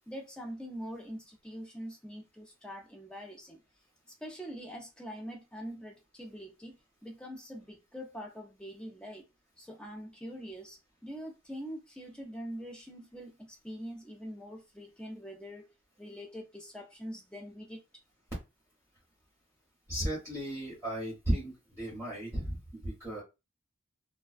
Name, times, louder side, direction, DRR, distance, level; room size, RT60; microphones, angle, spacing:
voice 1, 0.1-3.6 4.2-9.2 9.6-15.7 16.0-18.0, equal, 5° left, 0.4 m, -44 dB
voice 2, 19.9-23.2, right 1 dB, 10° right, 0.8 m, -35 dB
2.3 x 2.2 x 2.4 m
head